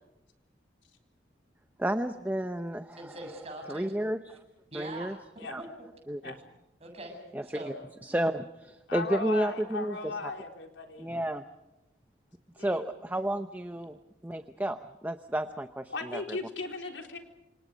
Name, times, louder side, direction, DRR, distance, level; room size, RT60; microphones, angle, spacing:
voice 1, 1.8-3.1 3.7-4.4 4.7-5.2 5.5-5.6 6.1-6.3 7.3-7.7 8.0-10.3 11.0-11.4 12.6-14.0 14.2-16.4, right 1 dB, 10° right, 8 dB, 0.7 m, -32 dB
voice 2, 3.0-3.9 4.7-5.2 5.6-5.7 6.8-7.7, right 1 dB, 35° right, 3 dB, 7.7 m, -42 dB
voice 3, 8.9-11.1 12.6-12.8 15.9-17.2, left 3 dB, 90° left, 3 dB, 4.1 m, -37 dB
28.5 x 27.5 x 5.2 m, 0.93 s
head